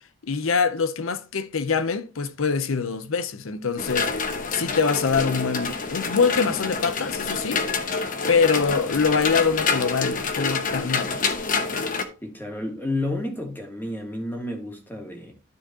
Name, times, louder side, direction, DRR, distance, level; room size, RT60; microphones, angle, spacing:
voice 1, 0.2-4.1 4.5-7.6 8.3-11.2, left 5 dB, 80° left, 0.7 m, -24 dB
sound 1, 3.8-12.1, left 4 dB, 40° left, 0.9 m, -27 dB
voice 2, 12.2-15.3, left 1 dB, 10° left, 1.7 m, -31 dB
12.5 x 4.5 x 2.8 m
head